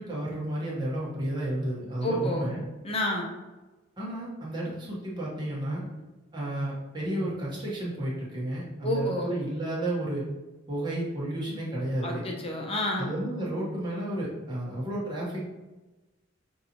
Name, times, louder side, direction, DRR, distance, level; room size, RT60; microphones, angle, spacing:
voice 1, 0.0-2.6 4.0-5.8 6.3-10.2 10.7-12.2 13.0-15.4, right 1 dB, 25° right, -6 dB, 1.1 m, -32 dB
voice 2, 2.0-2.5 2.8-3.3 8.8-9.3 11.5-11.6 12.0-13.1, equal, 30° left, 0 dB, 0.7 m, -29 dB
5.7 x 2.6 x 2.9 m, 1.1 s
head